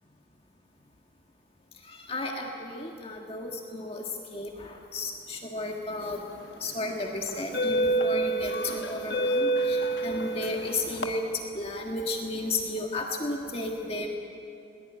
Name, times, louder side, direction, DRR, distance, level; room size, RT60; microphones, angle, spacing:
voice 1, 2.1-4.0 4.3-6.2 6.6-11.2 11.5-14.1, left 2 dB, 30° left, 1 dB, 1.7 m, -33 dB
sound 1, 6.3-6.5 7.3-11.1, right 2 dB, 55° left, 1.4 m, -28 dB
21.5 x 19.5 x 9.2 m, 2.7 s
head